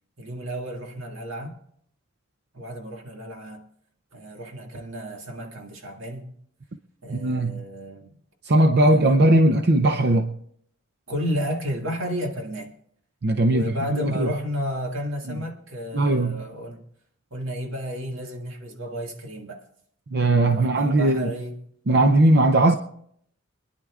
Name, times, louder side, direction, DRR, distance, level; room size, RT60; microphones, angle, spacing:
voice 1, 0.2-1.6 2.5-3.6 4.1-6.3 7.0-8.2 8.8-9.4 11.1-12.8 13.5-16.9 17.3-19.6 20.4-21.6, equal, 80° right, 2.0 m, -32 dB
voice 2, 7.1-7.6 8.5-10.3 13.2-14.3 15.3-15.4 15.9-16.4 20.1-21.3 21.9-22.7, right 1 dB, 55° right, 0.6 m, -19 dB
26.0 x 10.5 x 2.4 m
head